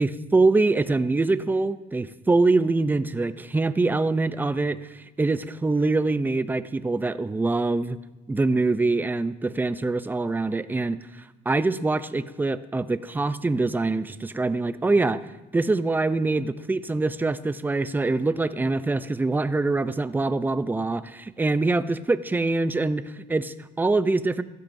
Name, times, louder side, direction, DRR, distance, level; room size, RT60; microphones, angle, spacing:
voice 1, 0.0-8.0 8.3-11.0 11.5-15.2 15.5-24.4, right 3 dB, 10° right, 13 dB, 0.5 m, -24 dB
16.5 x 12.0 x 2.7 m, 1.1 s
cardioid pair, 110°, 17 cm